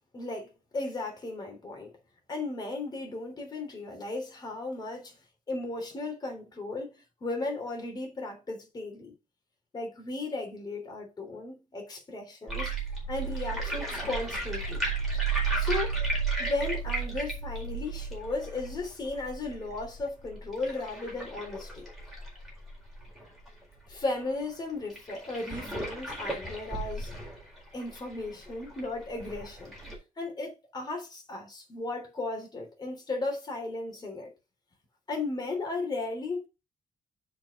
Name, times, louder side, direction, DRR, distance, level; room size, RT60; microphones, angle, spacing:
voice 1, 0.1-2.0 2.3-5.2 5.5-9.1 9.7-12.7 13.1-14.8 15.5-16.0 16.4-21.9 23.9-27.1 27.7-29.7 30.2-34.3 35.1-36.5, left 3 dB, 30° left, 3.1 m, -35 dB
sound 1, 12.5-23.5 23.9-24.0 24.2-24.3 24.9-29.9, right 4 dB, ahead, 4.5 m, -33 dB
7.3 x 5.2 x 5.4 m
wide cardioid pair, 165°, 13 cm